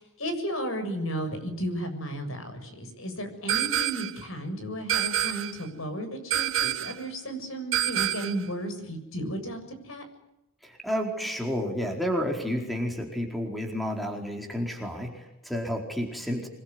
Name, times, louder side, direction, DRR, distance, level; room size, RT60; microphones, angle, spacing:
voice 1, 0.0-9.6 9.8-10.1, right 1 dB, 65° left, 7 dB, 7.2 m, -34 dB
sound 1, 3.5-4.2 4.9-5.6 6.3-7.0 7.7-8.5, right 11 dB, 65° right, 1.8 m, -27 dB
voice 2, 10.6-16.5, equal, ahead, 2 dB, 4.6 m, -31 dB
27.0 x 22.0 x 9.6 m, 0.90 s
head